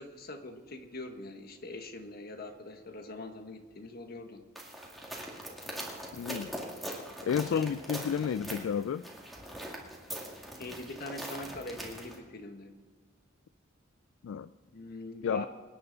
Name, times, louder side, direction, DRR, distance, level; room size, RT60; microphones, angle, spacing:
voice 1, 0.0-4.4 7.5-7.7 10.5-12.8 14.6-15.5, left 2 dB, 50° left, 6 dB, 1.3 m, -43 dB
sound 1, 4.6-12.2, equal, ahead, 2.0 m, -42 dB
voice 2, 6.2-6.5 7.3-9.0 14.2-14.5 15.2-15.5, left 7 dB, 75° left, 15 dB, 0.3 m, -31 dB
25.5 x 10.0 x 4.0 m, 1.4 s
head